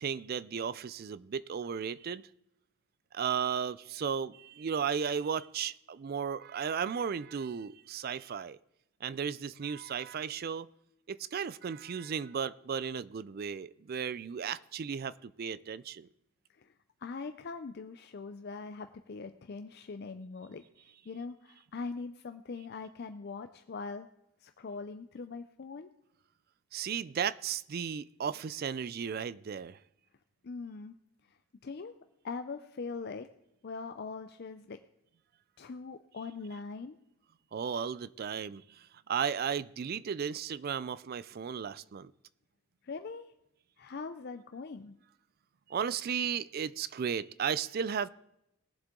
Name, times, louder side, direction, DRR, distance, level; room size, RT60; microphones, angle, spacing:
voice 1, 0.0-2.2 3.1-8.6 9.0-10.7 11.1-16.1 26.7-29.8 37.5-42.1 45.7-48.1, right 7 dB, 45° right, 19 dB, 0.3 m, -35 dB
voice 2, 17.0-20.6 21.1-24.1 24.4-25.9 30.4-31.0 31.6-31.9 32.2-33.3 33.6-34.8 35.6-37.0 42.8-43.3 43.8-45.0, left 4 dB, 45° left, 9 dB, 0.4 m, -41 dB
20.0 x 7.5 x 3.7 m, 0.84 s
head